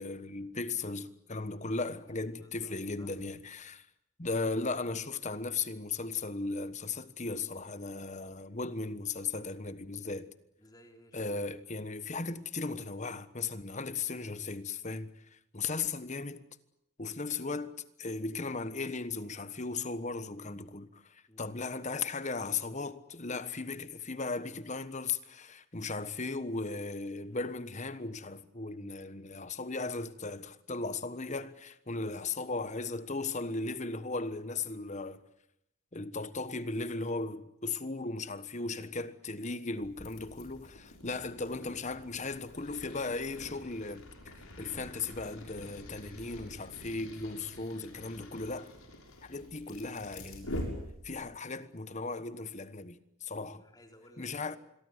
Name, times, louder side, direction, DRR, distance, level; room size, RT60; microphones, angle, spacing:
voice 1, 0.0-3.9 4.2-10.3 11.1-16.4 17.0-35.2 35.9-48.7 49.2-50.5 51.0-53.6 54.2-54.6, left 3 dB, 35° left, 1.3 m, -37 dB
voice 2, 2.1-3.1 10.6-11.3 21.3-21.6 53.5-54.6, equal, 15° left, 3.8 m, -59 dB
sound 1, 39.8-51.4, left 1 dB, 75° left, 6.7 m, -46 dB
26.5 x 22.5 x 8.0 m
head